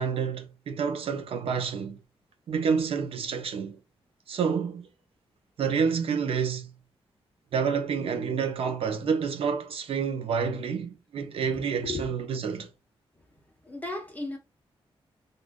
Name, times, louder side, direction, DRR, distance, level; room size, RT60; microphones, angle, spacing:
voice 1, 0.0-2.0 2.5-3.8 4.3-4.9 5.6-6.7 7.5-12.7, right 6 dB, 75° right, 0.7 m, -28 dB
voice 2, 11.5-12.1 13.6-14.4, left 2 dB, 15° left, 1.0 m, -35 dB
3.6 x 2.5 x 2.4 m
wide cardioid pair, 150°, 10 cm